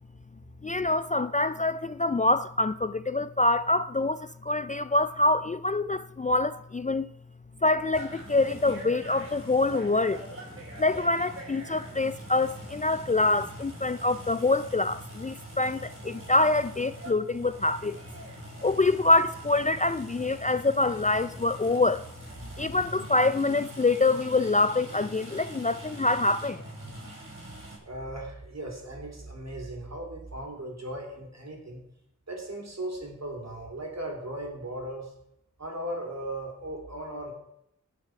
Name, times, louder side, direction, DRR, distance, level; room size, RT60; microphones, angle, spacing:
voice 1, 0.6-7.1 7.6-10.2 10.8-18.0 18.6-22.0 22.6-26.6, left 2 dB, 25° left, 0.3 m, -25 dB
sound 1, 7.9-27.8, right 1 dB, 40° right, 4.8 m, -44 dB
sound 2, 8.1-13.5, equal, 5° left, 5.0 m, -51 dB
voice 2, 27.8-31.8 32.3-35.1 35.6-37.3, right 1 dB, 55° right, 3.4 m, -37 dB
17.5 x 6.0 x 4.7 m
wide cardioid pair, 50°, 31 cm